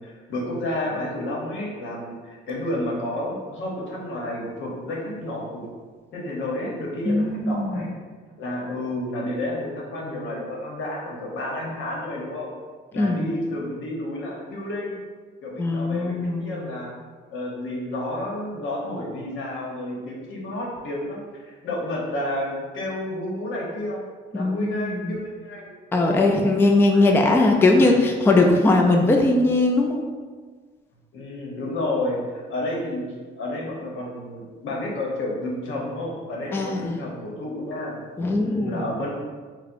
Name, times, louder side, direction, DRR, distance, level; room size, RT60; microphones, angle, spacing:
voice 1, 0.0-5.7 6.1-7.9 8.4-12.5 12.9-15.0 15.4-16.9 17.3-24.0 24.3-26.3 26.9-27.1 27.8-27.9 31.1-33.1 33.4-38.0 38.4-39.1, left 1 dB, 80° left, -3 dB, 0.9 m, -31 dB
voice 2, 7.1-7.8 13.0-13.2 15.6-16.6 24.3-25.2 25.9-30.1 36.5-37.1 38.2-38.8, left 2 dB, 10° left, 2 dB, 0.3 m, -20 dB
4.3 x 2.1 x 2.5 m, 1.5 s
cardioid pair, 90°, 20 cm